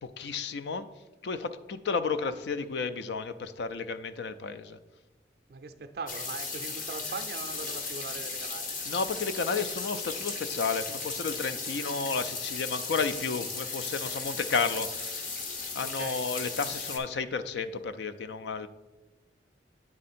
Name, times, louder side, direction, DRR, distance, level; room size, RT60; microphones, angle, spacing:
voice 1, 0.0-0.9 1.2-4.8 8.8-15.4 15.7-18.7, left 5 dB, 75° left, 12 dB, 0.4 m, -32 dB
voice 2, 5.5-8.7 15.8-16.3, right 4 dB, 55° right, 7 dB, 0.4 m, -40 dB
sound 1, 6.1-17.0, left 4 dB, 45° left, 0.8 m, -36 dB
8.7 x 3.7 x 4.2 m, 1.2 s
head